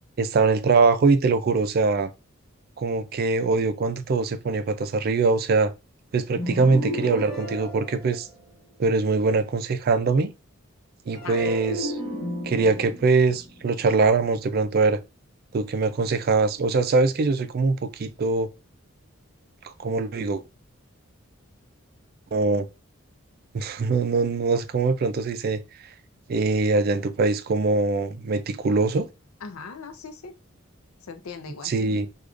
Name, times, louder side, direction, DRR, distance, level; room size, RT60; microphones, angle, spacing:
voice 1, 0.2-2.1 2.8-5.7 6.1-8.3 8.8-10.3 11.1-12.0 12.4-15.0 15.5-18.5 19.6-20.4 22.3-22.7 23.5-25.6 26.3-29.1 31.6-32.1, right 3 dB, 45° right, 0.3 m, -22 dB
sound 1, 6.3-8.7 11.1-14.5, right 1 dB, 35° left, 1.6 m, -34 dB
voice 2, 29.4-30.3 31.1-32.1, left 5 dB, 80° left, 0.5 m, -39 dB
4.8 x 2.3 x 2.4 m
head